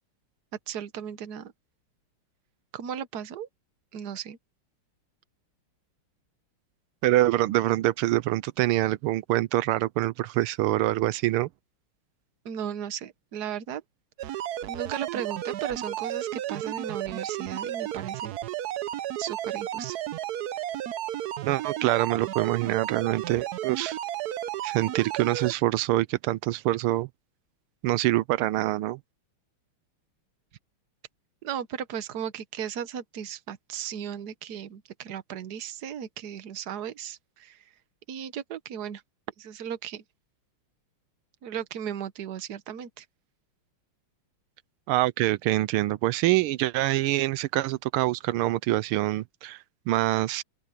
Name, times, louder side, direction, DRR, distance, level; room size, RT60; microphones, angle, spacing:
voice 1, 0.7-1.5 2.7-3.5 3.9-4.4 12.4-13.8 14.2-14.4 14.7-18.3 19.2-20.0 31.4-37.6 38.1-39.0 39.4-40.0 41.4-43.0, right 9 dB, 55° right, 1.5 m, -36 dB
voice 2, 7.0-11.5 21.4-24.0 24.6-27.1 27.8-29.0 44.9-50.4, right 16 dB, 90° right, 1.5 m, -25 dB
sound 1, 14.2-25.5, right 12 dB, 70° right, 0.9 m, -33 dB
open air
omnidirectional pair, 2.3 m